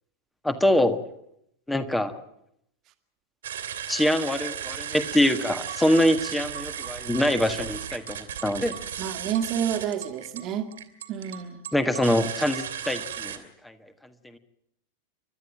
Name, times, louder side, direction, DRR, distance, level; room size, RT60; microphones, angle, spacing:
voice 1, 0.4-1.0 1.7-2.1 3.9-8.8 11.7-13.7, left 1 dB, 5° left, 10 dB, 1.6 m, -24 dB
sound 1, 3.4-13.4, right 9 dB, 65° right, 2.3 m, -35 dB
voice 2, 9.0-10.7 11.1-11.6, right 9 dB, 35° right, 8 dB, 1.9 m, -29 dB
29.5 x 12.5 x 8.8 m, 0.76 s
figure-of-eight pair, 90°, 0 cm